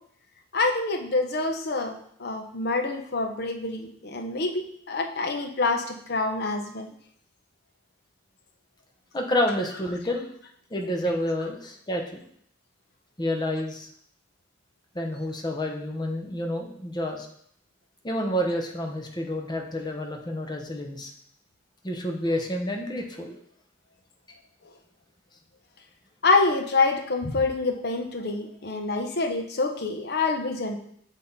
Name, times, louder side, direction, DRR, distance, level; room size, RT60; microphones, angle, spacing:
voice 1, 0.5-6.9 26.2-30.8, left 3 dB, 55° left, 4 dB, 0.8 m, -26 dB
voice 2, 9.1-10.3 10.7-12.2 13.2-13.9 14.9-17.3 18.0-21.1 21.8-23.4, left 1 dB, 25° left, 2 dB, 0.9 m, -29 dB
7.7 x 3.6 x 4.1 m, 0.66 s
head